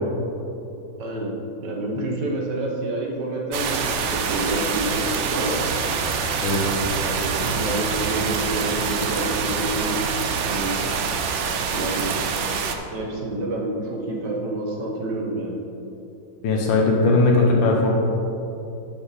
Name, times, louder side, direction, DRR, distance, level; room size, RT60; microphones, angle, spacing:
voice 1, 1.0-1.3 1.6-5.6 7.0-10.1 10.5-10.8 11.7-12.2 12.9-15.6, right 1 dB, 70° right, -1 dB, 1.8 m, -28 dB
sound 1, 3.5-12.8, right 5 dB, 85° right, 0.6 m, -25 dB
voice 2, 16.4-17.9, left 3 dB, 85° left, -1 dB, 1.7 m, -18 dB
11.0 x 5.3 x 4.1 m, 2.9 s
omnidirectional pair, 2.0 m